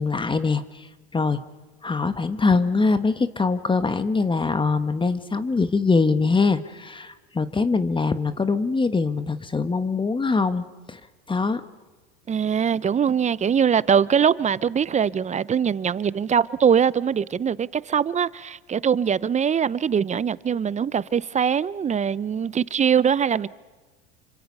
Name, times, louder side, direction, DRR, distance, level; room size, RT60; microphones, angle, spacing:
voice 1, 0.0-1.4 1.8-11.0 11.3-11.6, left 4 dB, 15° left, 1.4 m, -23 dB
voice 2, 12.3-23.5, right 7 dB, 20° right, 0.7 m, -22 dB
28.0 x 26.0 x 5.5 m
hypercardioid pair, 95°, 32 cm